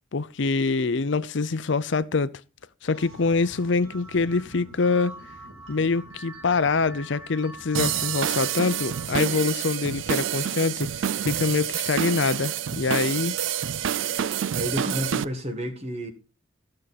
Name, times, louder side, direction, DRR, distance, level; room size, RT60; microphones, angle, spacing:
voice 1, 0.1-2.3 2.8-5.1 5.7-13.4, left 4 dB, 60° left, 0.6 m, -25 dB
sound 1, 2.9-9.1, right 1 dB, 90° right, 3.2 m, -44 dB
sound 2, 7.7-15.2, right 9 dB, 70° right, 0.4 m, -28 dB
voice 2, 14.5-16.1, equal, 30° right, 1.6 m, -30 dB
15.0 x 6.4 x 4.0 m
head